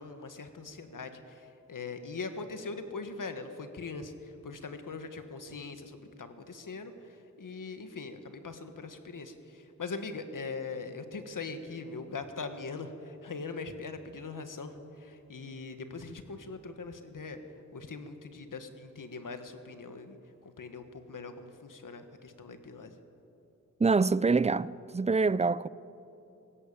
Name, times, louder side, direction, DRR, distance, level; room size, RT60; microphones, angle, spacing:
voice 1, 0.0-17.4 17.7-20.2 20.4-23.0, left 4 dB, 80° left, 1.6 m, -41 dB
voice 2, 23.8-25.7, right 4 dB, 20° right, 0.4 m, -25 dB
19.5 x 17.5 x 8.7 m
wide cardioid pair, 85°, 32 cm